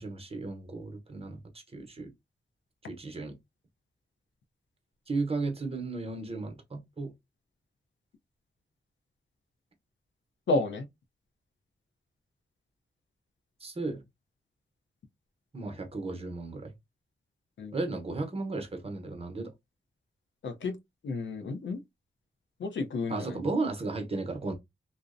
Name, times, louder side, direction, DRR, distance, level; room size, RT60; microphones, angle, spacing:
voice 1, 0.0-1.4 1.7-2.1 2.9-3.4 5.1-7.1 13.6-14.0 15.5-16.7 17.7-19.5 23.1-24.5, right 3 dB, 30° right, 0.8 m, -34 dB
voice 2, 10.5-10.9 17.6-17.8 20.4-20.8 21.0-21.8 22.6-23.4, left 3 dB, 90° left, 0.6 m, -31 dB
2.6 x 2.1 x 2.4 m
wide cardioid pair, 100°, 19 cm